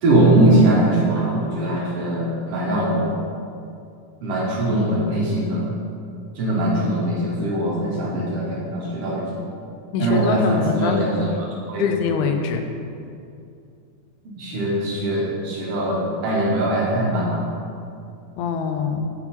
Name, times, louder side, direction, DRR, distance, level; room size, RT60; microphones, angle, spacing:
voice 1, 0.0-3.1 4.2-5.7 6.4-9.3 10.0-11.3 11.7-11.9 14.3-17.4, right 1 dB, 75° right, -5 dB, 1.3 m, -21 dB
voice 2, 9.9-11.1 11.8-12.6 18.4-19.1, left 5 dB, 90° left, 5 dB, 2.6 m, -24 dB
9.8 x 4.5 x 4.2 m, 2.5 s
omnidirectional pair, 4.4 m